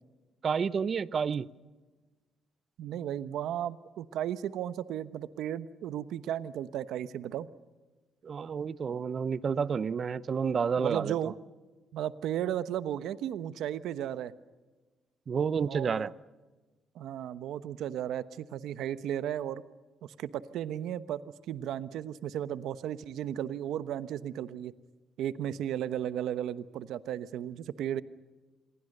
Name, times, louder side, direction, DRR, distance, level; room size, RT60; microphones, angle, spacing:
voice 1, 0.4-1.5 8.2-11.3 15.3-16.1, right 6 dB, 45° right, 0.8 m, -30 dB
voice 2, 2.8-7.5 10.8-11.3 11.9-14.3 15.7-16.0 16.9-19.6 20.2-24.7 25.2-28.0, right 10 dB, 80° right, 1.0 m, -35 dB
27.5 x 22.0 x 6.7 m
cardioid pair, 90°, 0 cm